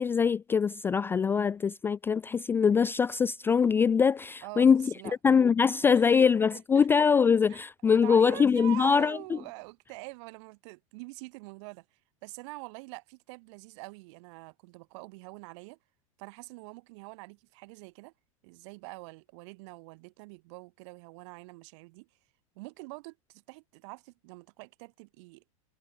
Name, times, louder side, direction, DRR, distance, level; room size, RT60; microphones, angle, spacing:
voice 1, 0.0-4.9 5.2-9.2, left 6 dB, 10° left, 0.3 m, -23 dB
voice 2, 4.4-5.2 5.9-6.3 6.7-6.9 7.2-11.8 12.2-15.8 16.2-18.1 18.4-22.1 22.6-25.6, right 27 dB, 55° right, 3.9 m, -45 dB
hypercardioid pair, 120°, 18 cm